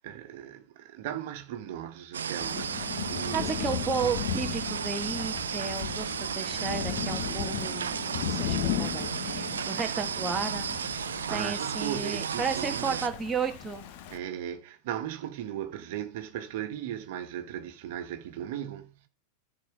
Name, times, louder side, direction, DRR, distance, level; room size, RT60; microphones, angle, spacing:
voice 1, 0.0-3.6 11.1-13.0 14.1-19.1, right 10 dB, 60° right, 1.5 m, -37 dB
sound 1, 2.1-13.1, right 7 dB, 90° right, 0.4 m, -34 dB
Thunder / Rain, 2.4-14.2, left 10 dB, 60° left, 1.2 m, -36 dB
voice 2, 3.3-11.0 11.3-13.9, right 5 dB, 20° right, 1.4 m, -33 dB
10.5 x 4.4 x 6.1 m
hypercardioid pair, 110°, 0 cm